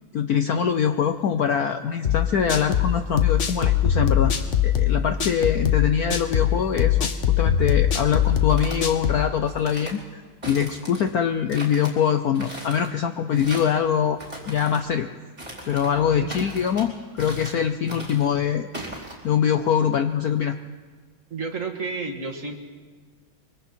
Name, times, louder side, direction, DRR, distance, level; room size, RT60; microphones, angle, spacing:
voice 1, 0.1-4.3 4.6-7.1 7.4-14.2 14.5-15.1 15.7-18.7 19.2-20.6, left 8 dB, 65° left, 8 dB, 1.0 m, -23 dB
sound 1, 2.0-9.3, left 9 dB, 45° left, 1.2 m, -22 dB
sound 2, 8.2-8.9 9.5-10.0 10.4-11.1 11.5-11.9 12.3-12.9 13.3-13.8 14.2-14.8 15.4-15.9 16.3-16.9 17.2-17.6 17.9-18.3 18.7-19.1, right 1 dB, 20° right, 4.6 m, -38 dB
voice 2, 21.3-22.6, right 4 dB, 40° right, 2 dB, 2.0 m, -31 dB
24.5 x 24.0 x 4.5 m, 1.5 s
omnidirectional pair, 2.2 m